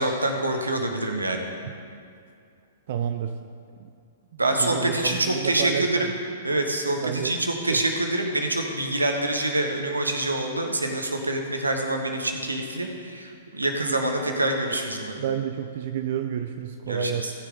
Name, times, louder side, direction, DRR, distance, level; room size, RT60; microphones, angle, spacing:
voice 1, 0.0-1.4 4.4-6.1 6.4-15.2 16.9-17.3, right 2 dB, 85° right, 4 dB, 1.3 m, -26 dB
voice 2, 2.9-3.4 4.3-6.1 7.0-7.3 7.7-7.8 15.2-17.3, right 8 dB, 50° right, 8 dB, 0.5 m, -29 dB
18.0 x 6.3 x 3.8 m, 2.4 s
figure-of-eight pair, 110°, 0 cm